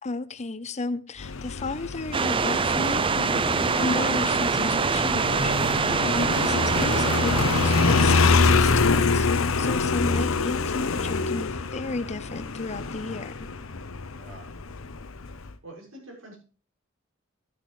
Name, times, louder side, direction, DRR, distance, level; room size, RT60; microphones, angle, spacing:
voice 1, 0.0-13.5, left 3 dB, 35° left, 0.7 m, -34 dB
Motorcycle, 1.2-15.5, left 4 dB, 90° left, 0.9 m, -25 dB
sound 1, 2.1-8.5, right 5 dB, 25° right, 0.5 m, -25 dB
voice 2, 14.1-14.5 15.3-16.4, right 1 dB, 80° right, 6.5 m, -46 dB
12.5 x 10.0 x 3.2 m
head